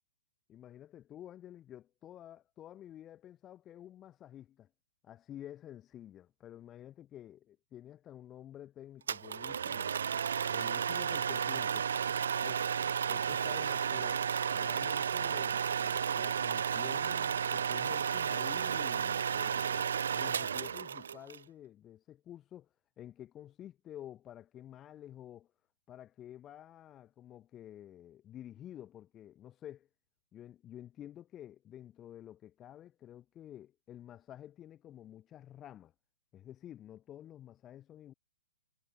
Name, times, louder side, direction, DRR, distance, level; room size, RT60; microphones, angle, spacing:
voice 1, 0.5-4.7 5.0-9.9 10.5-11.9 12.4-12.7 13.0-22.7 23.0-25.5 25.9-29.9 30.3-35.9 36.3-38.1, left 11 dB, 20° left, 3.6 m, -50 dB
sound 1, 9.1-21.4, right 7 dB, 75° right, 0.3 m, -33 dB
hypercardioid pair, 150°, 0 cm